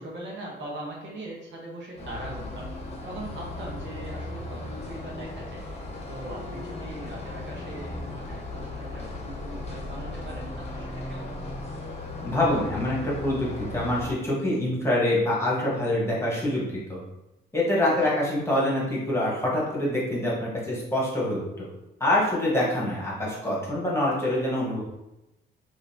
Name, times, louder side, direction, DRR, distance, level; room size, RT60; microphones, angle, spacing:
voice 1, 0.0-5.7 6.1-11.6 17.8-18.1, right 1 dB, 70° right, -3 dB, 1.2 m, -41 dB
sound 1, 2.0-14.1, left 2 dB, 30° left, 0.8 m, -37 dB
voice 2, 12.2-16.6 16.9-17.0 17.5-21.7 22.0-24.8, left 1 dB, 15° left, -5 dB, 1.4 m, -25 dB
3.9 x 2.9 x 2.8 m, 0.93 s
cardioid pair, 90°, 20 cm